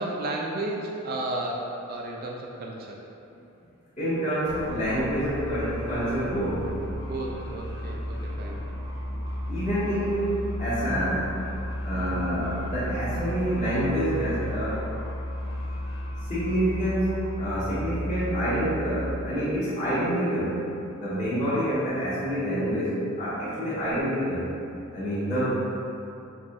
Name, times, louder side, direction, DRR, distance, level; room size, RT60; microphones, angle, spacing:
voice 1, 0.0-3.0 7.0-8.6 11.9-12.2 23.6-23.8, right 2 dB, 45° right, -1 dB, 0.3 m, -33 dB
voice 2, 4.0-6.8 9.5-11.5 11.8-14.8 16.3-20.6 21.0-24.5 24.9-25.5, equal, 35° left, -11 dB, 1.4 m, -27 dB
sound 1, 4.4-19.1, equal, 65° left, 0.9 m, -34 dB
5.2 x 2.8 x 2.7 m, 2.7 s
head